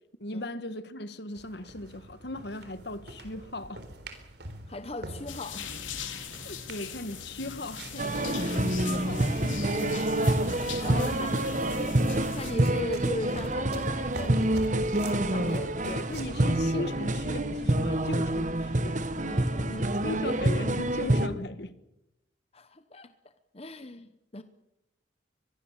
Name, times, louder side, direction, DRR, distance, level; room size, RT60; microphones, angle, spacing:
voice 1, 0.2-3.8 6.4-11.4 11.7-12.0 15.8-19.1 19.7-21.8, left 1 dB, 60° left, 1.6 m, -38 dB
sound 1, 1.4-16.2, right 2 dB, 60° right, 3.8 m, -46 dB
voice 2, 4.7-5.8 10.8-11.5 12.3-16.0 19.2-19.9 22.5-23.1 23.5-24.4, left 2 dB, 30° left, 1.0 m, -39 dB
sound 2, 5.3-12.5, left 5 dB, 90° left, 3.6 m, -40 dB
sound 3, 8.0-21.3, right 1 dB, 40° right, 1.3 m, -27 dB
23.5 x 22.0 x 7.4 m
head